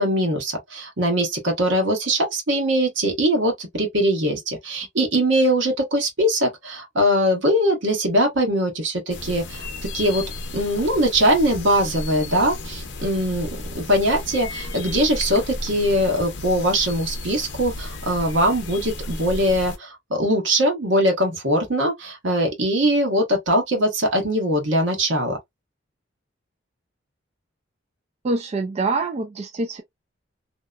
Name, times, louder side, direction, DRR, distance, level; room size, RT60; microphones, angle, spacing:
voice 1, 0.0-9.7 9.9-10.2 10.5-13.5 13.7-25.4, equal, 75° right, 1.1 m, -21 dB
sound 1, 9.1-19.8, left 2 dB, 65° left, 0.6 m, -34 dB
voice 2, 28.2-29.8, right 3 dB, 35° right, 0.3 m, -25 dB
2.8 x 2.1 x 2.3 m
head